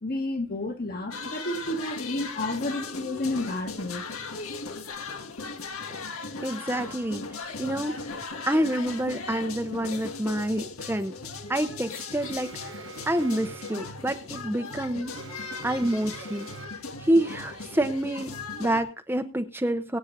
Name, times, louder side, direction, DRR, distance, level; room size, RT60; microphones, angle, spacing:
voice 1, 0.0-4.0, left 1 dB, 45° left, 2.2 m, -31 dB
sound 1, 1.1-18.8, left 4 dB, 85° left, 1.8 m, -38 dB
voice 2, 6.4-8.1 8.4-11.1 11.5-15.2 15.6-16.5 17.0-20.0, right 1 dB, 10° right, 0.7 m, -28 dB
Alarm, 12.2-14.0 15.2-17.0, right 3 dB, 65° right, 1.5 m, -45 dB
24.0 x 8.7 x 2.7 m
head